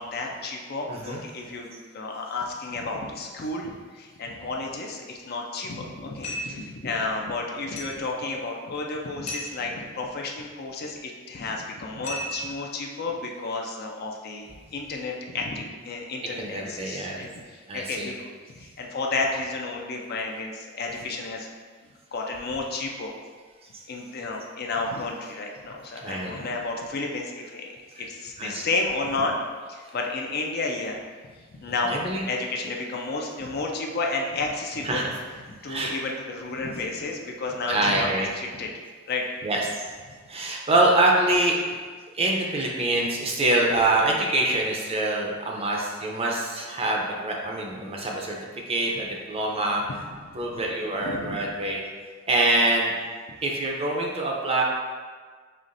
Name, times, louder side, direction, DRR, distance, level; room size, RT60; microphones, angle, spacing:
voice 1, 0.0-18.1 18.6-21.5 22.1-23.1 23.9-29.3 29.7-31.0 31.5-35.1 35.5-38.7 39.1-39.2 40.1-40.2 50.3-50.4 51.0-51.4, left 3 dB, 50° left, 1 dB, 0.5 m, -32 dB
voice 2, 0.9-1.2 16.4-17.2 17.7-18.1 26.0-26.3 28.4-28.6 31.8-32.2 34.8-35.1 35.7-35.9 37.7-38.3 39.4-39.6 40.3-41.6 42.1-48.4 48.7-49.8 50.3-51.8 52.3-52.9 53.4-54.6, right 2 dB, 30° right, -1 dB, 0.5 m, -25 dB
sound 1, 6.2-6.6 7.8-8.1 9.3-9.6 12.0-12.7, equal, 35° left, 0.8 m, -34 dB
5.6 x 3.1 x 2.5 m, 1.5 s
head